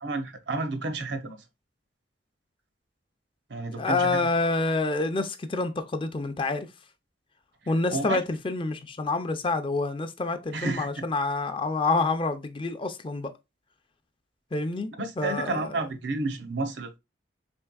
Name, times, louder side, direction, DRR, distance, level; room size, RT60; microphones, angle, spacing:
voice 1, 0.0-1.4 3.5-4.2 7.9-8.2 10.5-10.9 15.0-17.0, right 3 dB, 75° right, 0.7 m, -30 dB
voice 2, 3.8-6.7 7.7-13.3 14.5-14.9 15.2-15.8, left 3 dB, 30° left, 0.5 m, -27 dB
4.4 x 3.2 x 2.3 m
head